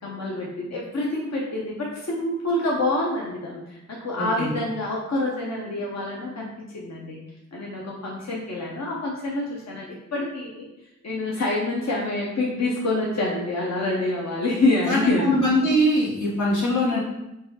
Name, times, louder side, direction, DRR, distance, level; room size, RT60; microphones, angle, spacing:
voice 1, 0.0-7.2 7.5-9.9 10.1-10.7 11.0-15.6, left 2 dB, 60° left, -4 dB, 0.8 m, -27 dB
voice 2, 4.2-4.5 14.9-17.0, equal, 90° left, -6 dB, 1.3 m, -22 dB
3.9 x 2.3 x 4.1 m, 0.91 s
cardioid pair, 45°, 30 cm